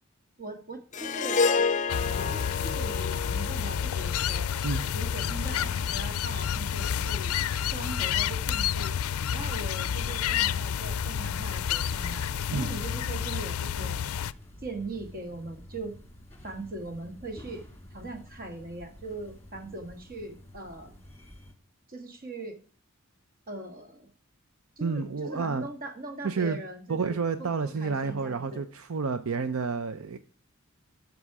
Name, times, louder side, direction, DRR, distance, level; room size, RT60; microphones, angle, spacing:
voice 1, 0.4-1.4 2.0-4.5 4.9-9.0 9.3-14.0 14.6-15.9 16.4-17.6 17.9-20.9 21.9-22.6 23.5-24.1 24.8-27.5 27.8-28.6, right 2 dB, 45° right, 1.7 m, -40 dB
Harp, 0.9-5.4, left 5 dB, 35° left, 0.6 m, -30 dB
sound 1, 1.9-14.3, left 8 dB, 90° left, 0.4 m, -29 dB
sound 2, 5.2-21.5, left 1 dB, 10° left, 1.9 m, -49 dB
voice 2, 24.8-25.7 26.2-26.6 26.9-30.2, right 5 dB, 80° right, 0.6 m, -30 dB
13.0 x 6.2 x 4.8 m
head